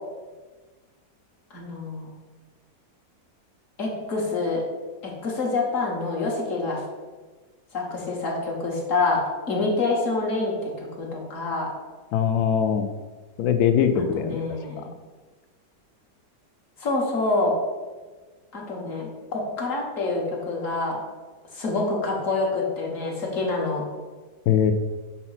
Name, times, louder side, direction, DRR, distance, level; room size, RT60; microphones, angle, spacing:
voice 1, 1.5-2.1 3.8-4.6 5.0-6.8 7.7-9.2 9.5-11.7 14.2-14.9 16.8-17.5 18.5-21.0 21.5-23.8, left 3 dB, 50° left, -2 dB, 1.5 m, -26 dB
voice 2, 12.1-12.9 13.4-14.4 14.8-14.9 24.5-24.7, left 8 dB, 70° left, 9 dB, 1.0 m, -21 dB
6.9 x 2.9 x 5.5 m, 1.3 s
omnidirectional pair, 1.9 m